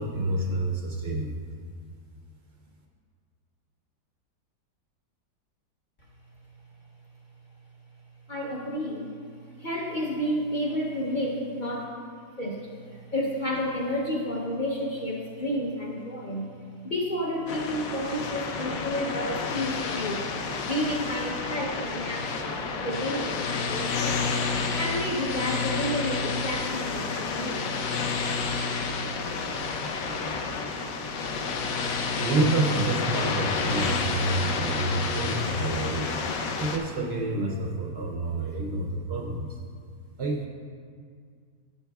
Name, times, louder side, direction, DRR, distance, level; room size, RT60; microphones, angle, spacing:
voice 1, 0.0-1.5 30.0-30.8 31.9-36.1 36.6-39.6 40.2-40.5, right 2 dB, 70° right, 0 dB, 0.6 m, -29 dB
voice 2, 8.3-11.9 12.4-20.3 20.6-27.7, equal, 45° left, -2 dB, 0.6 m, -31 dB
sound 1, 17.5-36.8, left 4 dB, 65° left, 1.0 m, -30 dB
12.5 x 8.3 x 2.3 m, 2.1 s
omnidirectional pair, 1.9 m